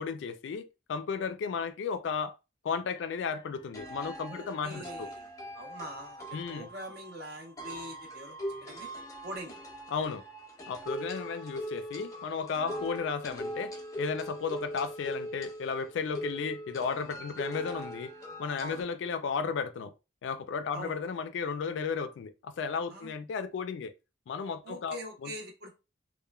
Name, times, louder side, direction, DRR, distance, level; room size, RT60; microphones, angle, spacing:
voice 1, 0.0-2.4 2.6-5.1 6.3-6.7 9.9-10.2 10.7-18.1 18.4-19.9 20.2-23.9 24.3-25.3, left 5 dB, 65° left, 0.3 m, -34 dB
sound 1, 3.0-3.1 3.7-18.8, equal, 15° left, 0.5 m, -41 dB
voice 2, 4.3-5.3 5.5-8.9 9.2-9.6 12.7-12.8 18.6-18.9 20.7-21.0 22.9-23.1 24.6-25.7, right 1 dB, 55° right, 0.7 m, -43 dB
2.9 x 2.1 x 2.2 m
head